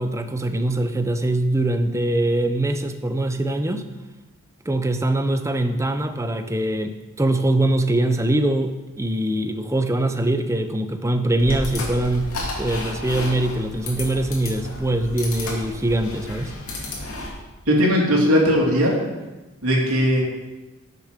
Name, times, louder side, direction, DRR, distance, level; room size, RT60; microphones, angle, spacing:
voice 1, 0.0-3.9 4.7-12.3 12.6-16.5, right 1 dB, 15° right, 8 dB, 0.6 m, -23 dB
sound 1, 11.4-17.3, left 2 dB, 65° left, 2.7 m, -32 dB
voice 2, 17.7-18.9 19.6-20.2, equal, 75° right, -2 dB, 2.9 m, -18 dB
12.0 x 6.8 x 5.0 m, 1.1 s
head